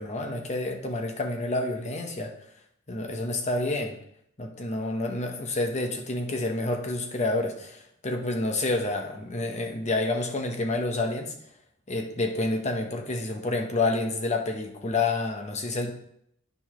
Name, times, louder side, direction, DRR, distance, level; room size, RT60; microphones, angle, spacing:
voice 1, 0.0-2.3 2.9-4.0 4.4-11.3 11.9-15.9, left 2 dB, 35° left, 3 dB, 0.9 m, -29 dB
9.5 x 6.5 x 3.1 m, 0.73 s
head